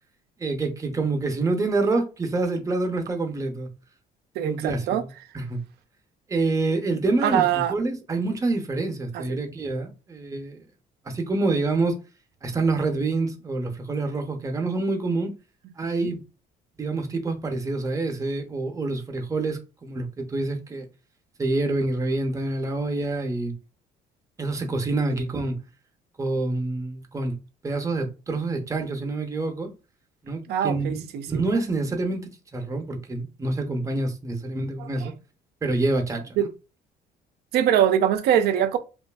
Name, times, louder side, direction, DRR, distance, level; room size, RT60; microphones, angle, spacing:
voice 1, 0.4-3.7 4.4-5.1 5.3-5.6 6.3-10.6 11.1-12.0 12.4-15.3 15.8-16.2 16.8-20.9 21.4-23.6 24.4-25.6 26.2-27.4 27.6-29.7 30.2-35.1 35.6-36.5, right 3 dB, 20° right, 0.6 m, -27 dB
voice 2, 4.4-5.0 7.2-7.7 9.1-9.2 15.8-16.1 25.1-25.2 30.5-31.4 34.8-35.1 36.4-36.5 37.5-38.8, right 10 dB, 75° right, 0.5 m, -23 dB
2.6 x 2.3 x 2.2 m
cardioid pair, 110°, 17 cm